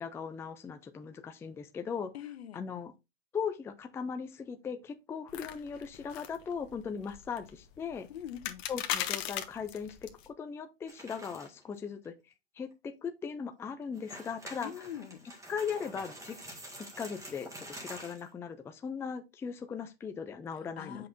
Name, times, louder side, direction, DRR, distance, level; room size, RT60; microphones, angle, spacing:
voice 1, 0.0-2.1 2.5-2.9 3.3-8.1 8.7-10.1 10.4-12.1 12.6-14.7 15.5-16.4 17.0-21.1, left 6 dB, 10° left, 0.4 m, -38 dB
voice 2, 2.1-2.6 8.1-8.6 14.6-15.3 20.5-21.1, left 10 dB, 75° left, 0.9 m, -43 dB
sound 1, 5.3-10.3, left 12 dB, 45° left, 1.0 m, -39 dB
sound 2, 10.9-11.6 12.0-12.1 12.7-12.8 13.8-18.3, right 1 dB, 10° right, 1.9 m, -47 dB
7.5 x 5.5 x 2.6 m
hypercardioid pair, 115°, 32 cm